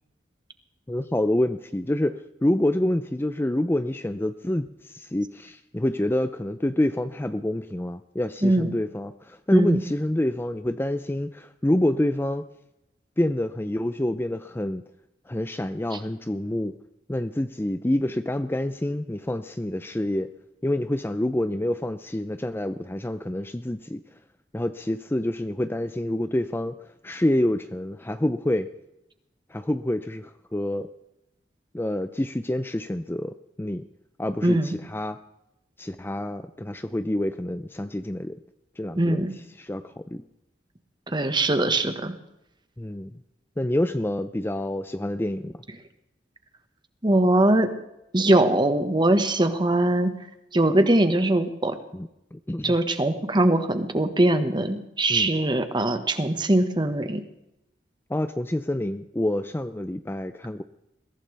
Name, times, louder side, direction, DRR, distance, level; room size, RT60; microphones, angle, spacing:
voice 1, 0.9-12.5 13.2-14.8 15.3-16.7 17.1-20.3 20.6-24.0 24.5-26.8 27.0-28.7 29.5-30.9 31.7-33.9 34.2-35.2 35.8-38.4 38.8-39.3 39.6-40.2 42.8-43.1 43.6-45.5 51.9-52.7 55.1-55.3 58.1-60.6, left 1 dB, 15° left, 10 dB, 0.5 m, -27 dB
voice 2, 8.4-8.7 9.5-9.8 34.4-34.7 39.0-39.3 41.1-42.1 47.0-47.7 48.1-50.1 50.5-51.8 52.6-57.2, right 1 dB, 25° right, 8 dB, 1.4 m, -21 dB
22.0 x 16.0 x 3.4 m, 0.85 s
head